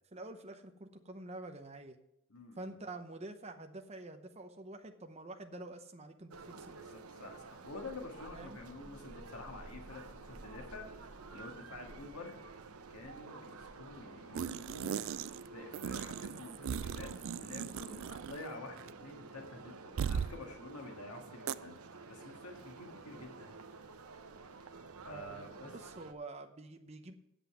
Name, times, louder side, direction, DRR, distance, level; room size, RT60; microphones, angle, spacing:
voice 1, 0.1-2.0 2.6-6.7 8.3-8.6 25.1-27.1, right 2 dB, 30° right, 5 dB, 0.8 m, -47 dB
voice 2, 2.3-2.7 6.8-12.4 12.9-21.8 22.1-23.5 25.0-25.7, left 2 dB, 90° left, 2 dB, 1.8 m, -49 dB
sound 1, 6.3-26.1, right 4 dB, 85° right, 0.9 m, -51 dB
sound 2, 14.3-15.5 15.7-18.5 18.8-18.9 20.0-20.4 21.5-21.6, right 7 dB, 65° right, 0.3 m, -38 dB
8.1 x 8.0 x 6.8 m, 0.81 s
head